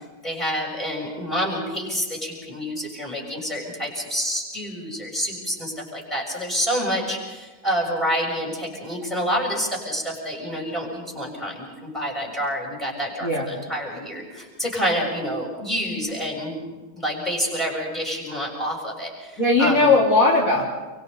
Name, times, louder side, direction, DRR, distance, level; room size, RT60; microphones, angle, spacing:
voice 1, 0.2-19.9, equal, ahead, -2 dB, 6.8 m, -28 dB
voice 2, 19.4-20.6, left 3 dB, 50° left, -6 dB, 4.4 m, -18 dB
30.0 x 24.5 x 4.1 m, 1.2 s
omnidirectional pair, 1.9 m